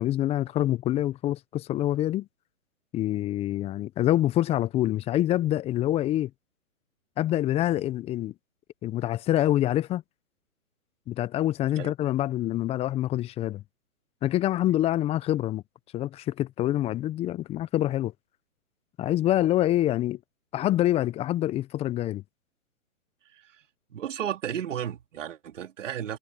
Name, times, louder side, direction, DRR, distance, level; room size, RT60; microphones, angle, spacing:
voice 1, 0.0-2.3 2.9-6.3 7.2-8.3 8.8-10.0 11.1-13.6 14.2-15.6 15.9-18.1 19.0-20.2 20.5-22.2, left 13 dB, 15° left, 1.1 m, -26 dB
voice 2, 23.9-26.2, right 9 dB, 55° right, 3.8 m, -33 dB
figure-of-eight pair, 135°, 44 cm